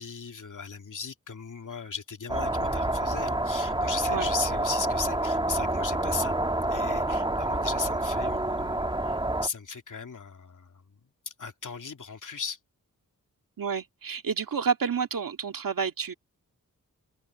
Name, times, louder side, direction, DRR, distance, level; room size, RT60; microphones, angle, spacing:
voice 1, 0.0-6.3 6.7-11.0 11.3-12.6, left 5 dB, 65° left, 2.8 m, -37 dB
sound 1, 2.3-9.5, right 1 dB, 15° right, 1.9 m, -28 dB
voice 2, 13.6-16.1, right 6 dB, 80° right, 2.1 m, -29 dB
wide cardioid pair, 90°, 33 cm